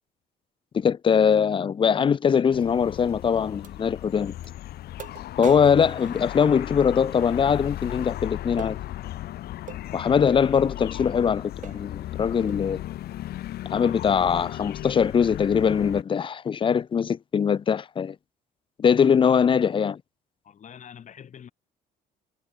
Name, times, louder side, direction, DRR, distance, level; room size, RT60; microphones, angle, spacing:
voice 1, 0.7-4.3 5.4-8.8 9.9-12.8 13.7-18.2 18.8-20.0, left 7 dB, 30° left, 0.6 m, -22 dB
sound 1, 2.5-16.0, left 14 dB, 70° left, 2.4 m, -36 dB
sound 2, 2.6-2.7 3.6-3.8 4.4-4.5 5.0-6.9 8.6-8.8 9.7-9.9 10.7-10.8 11.2-11.3 11.6-11.9 12.5-12.7, right 9 dB, 50° right, 2.8 m, -42 dB
voice 2, 20.4-21.5, left 8 dB, 45° left, 6.3 m, -45 dB
cardioid pair, 110°, 17 cm